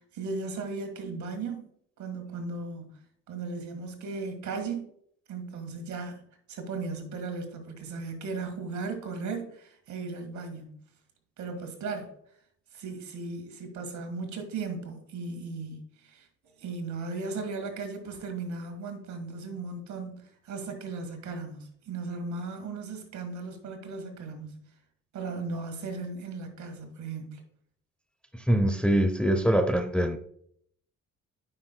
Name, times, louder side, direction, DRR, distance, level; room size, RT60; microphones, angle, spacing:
voice 1, 0.0-1.7 2.0-3.0 3.3-4.9 5.3-6.2 6.5-10.7 11.4-12.1 12.7-16.3 16.6-24.6 25.1-27.4, right 4 dB, 70° right, 1.8 m, -36 dB
voice 2, 28.3-30.2, right 1 dB, 5° left, 0.6 m, -24 dB
9.5 x 5.7 x 2.2 m
cardioid pair, 90°, 30 cm